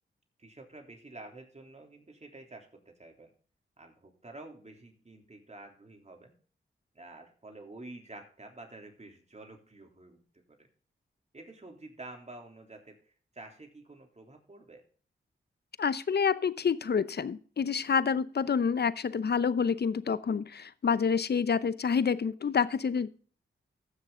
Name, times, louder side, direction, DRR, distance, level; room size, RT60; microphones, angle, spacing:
voice 1, 0.4-3.3 3.8-6.3 7.0-10.7 11.3-14.8, right 2 dB, 35° right, 2 dB, 3.3 m, -49 dB
voice 2, 15.8-23.2, left 6 dB, 50° left, 16 dB, 0.7 m, -28 dB
15.0 x 6.6 x 3.8 m, 0.42 s
supercardioid pair, 40°, 21 cm